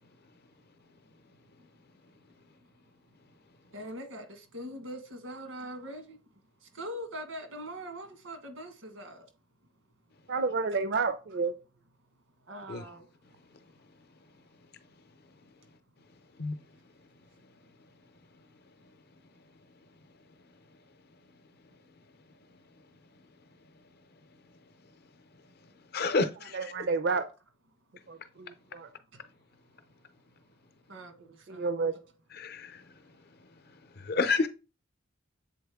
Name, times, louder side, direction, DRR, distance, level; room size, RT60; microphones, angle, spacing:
voice 1, 1.3-1.7 2.2-2.8 3.7-6.2 6.6-9.3 12.4-13.6 28.3-28.4 29.1-29.2 30.9-32.0 33.0-33.1, equal, 90° right, 1.5 m, -43 dB
voice 2, 10.3-11.5 26.5-27.2 28.1-28.9 31.5-31.9, right 4 dB, 55° right, 0.5 m, -30 dB
voice 3, 25.9-26.7 32.3-32.8 34.0-34.5, left 3 dB, 50° left, 0.6 m, -29 dB
7.6 x 4.0 x 3.5 m
head